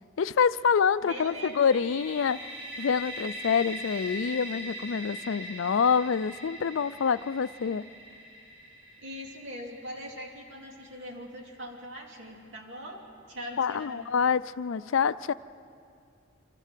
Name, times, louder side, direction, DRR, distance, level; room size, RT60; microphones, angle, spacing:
voice 1, 0.2-2.4 2.8-7.9 13.6-15.3, left 6 dB, 65° left, 15 dB, 0.4 m, -26 dB
voice 2, 1.0-1.7 9.0-14.1, equal, 60° right, -1 dB, 3.0 m, -41 dB
sound 1, 1.3-11.0, equal, 85° right, 5.4 m, -41 dB
25.5 x 14.5 x 7.5 m, 2.4 s
head